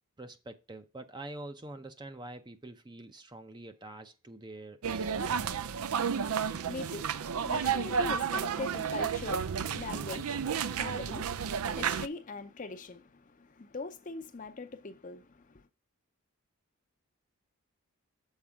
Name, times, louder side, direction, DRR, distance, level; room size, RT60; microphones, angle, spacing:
voice 1, 0.2-5.5, right 2 dB, 20° right, 0.6 m, -46 dB
sound 1, 4.8-12.1, right 7 dB, 80° right, 0.5 m, -32 dB
voice 2, 6.1-15.7, left 3 dB, 35° left, 0.6 m, -42 dB
7.3 x 4.6 x 5.0 m
head